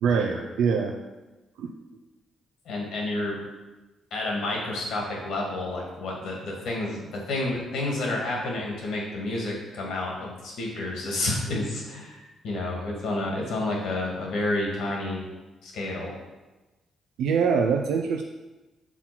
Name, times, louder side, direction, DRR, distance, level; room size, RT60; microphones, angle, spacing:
voice 1, 0.0-0.9 1.6-1.7 17.2-18.2, right 6 dB, 85° right, 3 dB, 0.5 m, -24 dB
voice 2, 2.7-3.4 4.1-15.2 15.6-16.2, left 2 dB, 75° left, -1 dB, 2.0 m, -30 dB
6.0 x 4.0 x 6.0 m, 1.1 s
cardioid pair, 90°, 0 cm